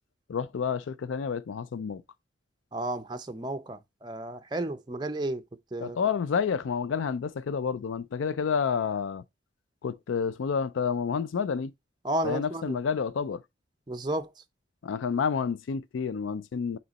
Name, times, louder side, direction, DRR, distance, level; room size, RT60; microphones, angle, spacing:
voice 1, 0.3-2.0 5.8-9.2 9.8-11.7 12.2-13.4 14.8-16.8, left 6 dB, 85° left, 0.4 m, -29 dB
voice 2, 2.7-5.4 5.7-6.0 12.0-12.8 13.9-14.3, right 1 dB, 20° right, 0.5 m, -32 dB
8.0 x 3.2 x 4.0 m
head